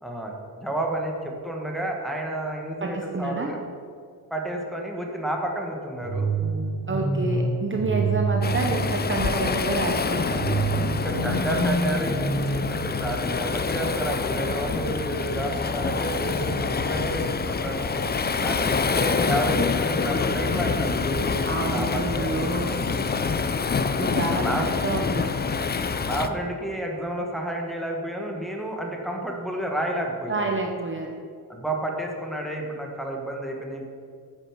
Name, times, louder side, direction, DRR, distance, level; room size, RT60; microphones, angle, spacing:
voice 1, 0.0-3.6 4.3-6.3 10.9-17.9 18.4-22.9 24.1-24.6 26.0-30.5 31.5-33.9, right 1 dB, ahead, 0 dB, 1.4 m, -31 dB
voice 2, 2.8-3.5 6.9-10.5 21.4-22.8 23.9-25.3 30.3-31.1, right 3 dB, 30° right, 2 dB, 0.7 m, -28 dB
sound 1, 6.0-9.1 10.3-13.2, right 3 dB, 75° right, 3.3 m, -27 dB
Waves surf, 8.4-26.3, left 5 dB, 25° left, 0.4 m, -26 dB
9.5 x 6.9 x 7.3 m, 2.2 s
wide cardioid pair, 165°, 40 cm